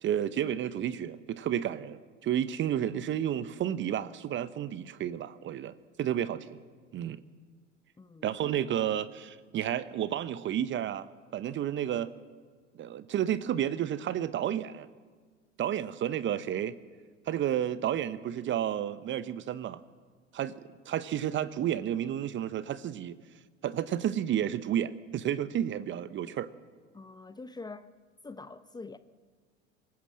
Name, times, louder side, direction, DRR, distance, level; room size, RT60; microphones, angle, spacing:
voice 1, 0.0-6.6 6.9-7.2 8.2-11.1 11.3-12.1 12.7-14.9 15.6-16.8 17.3-19.8 20.3-23.2 23.6-26.5, right 10 dB, 30° right, 0.9 m, -31 dB
voice 2, 8.0-8.6 26.9-27.9 28.2-29.0, left 3 dB, 10° left, 0.8 m, -45 dB
25.5 x 15.5 x 7.5 m
figure-of-eight pair, 80°, 38 cm